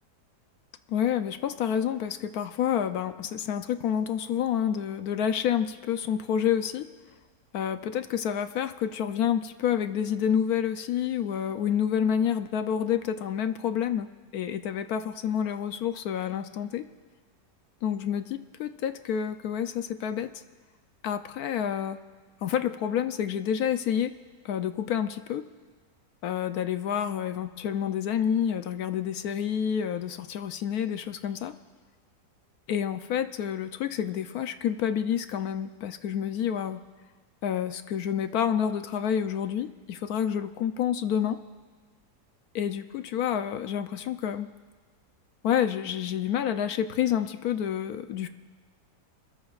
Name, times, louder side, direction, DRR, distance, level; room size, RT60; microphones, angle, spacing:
voice 1, 0.9-6.9 7.5-14.1 14.3-16.8 17.8-20.4 21.0-22.0 22.4-24.1 24.4-25.4 26.2-31.5 32.7-36.8 37.4-41.4 42.5-44.5 45.4-48.3, left 9 dB, 70° left, 9 dB, 1.0 m, -28 dB
26.5 x 21.0 x 2.4 m, 1.4 s
omnidirectional pair, 1.8 m